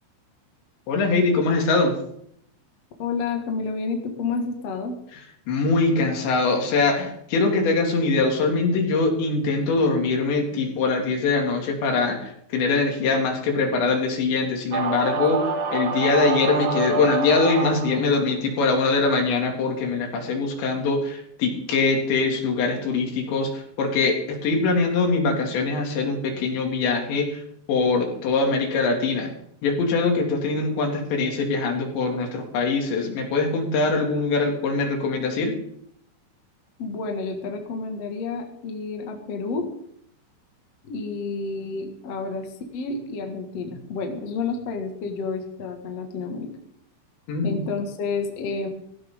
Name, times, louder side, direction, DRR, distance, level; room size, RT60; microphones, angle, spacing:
voice 1, 0.9-2.0 5.5-15.4 15.7-27.4 27.7-29.3 29.6-35.6 47.3-47.5, left 3 dB, 70° left, 2 dB, 4.5 m, -23 dB
voice 2, 3.0-5.0 36.8-39.6 40.8-46.5 47.4-48.7, left 4 dB, 50° left, 3 dB, 1.9 m, -30 dB
sound 1, 14.7-18.2, right 4 dB, 50° right, 2.6 m, -26 dB
17.0 x 15.5 x 3.7 m, 0.69 s
omnidirectional pair, 5.5 m